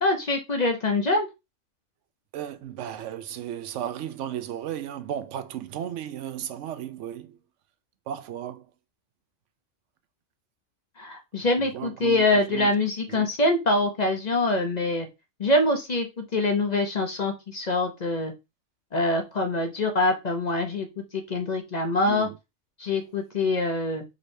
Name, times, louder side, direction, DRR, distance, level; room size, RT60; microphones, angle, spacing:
voice 1, 0.0-1.3 11.0-15.1 15.4-18.3 18.9-22.3 22.8-24.0, left 2 dB, 40° left, 0.7 m, -24 dB
voice 2, 2.3-7.4 8.1-8.7 11.6-12.7 13.1-13.3 22.0-22.4, right 10 dB, 80° right, 0.9 m, -35 dB
5.2 x 3.1 x 2.7 m
omnidirectional pair, 1.2 m